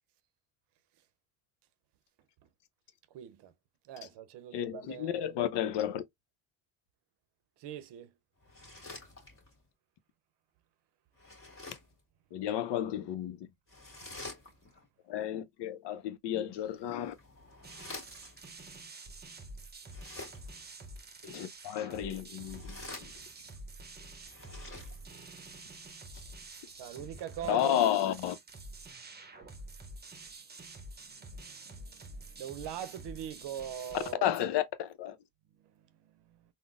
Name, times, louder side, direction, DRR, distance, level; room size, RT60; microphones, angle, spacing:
voice 1, 3.1-3.5 3.8-5.4 7.6-8.1 26.8-27.9 31.0-34.3 35.5-36.4, right 10 dB, 70° right, 0.7 m, -43 dB
voice 2, 4.5-6.0 12.3-13.5 15.1-17.1 21.2-22.8 27.4-28.4 34.2-35.2, left 11 dB, 70° left, 0.7 m, -32 dB
sound 1, 8.4-9.6 11.1-12.0 13.7-14.8 16.6-18.5 19.8-20.7 22.3-23.6 24.2-25.3, left 2 dB, 30° left, 1.6 m, -48 dB
sound 2, 17.6-34.1, right 2 dB, 25° right, 0.7 m, -48 dB
3.7 x 2.1 x 2.4 m
supercardioid pair, 70°, 43 cm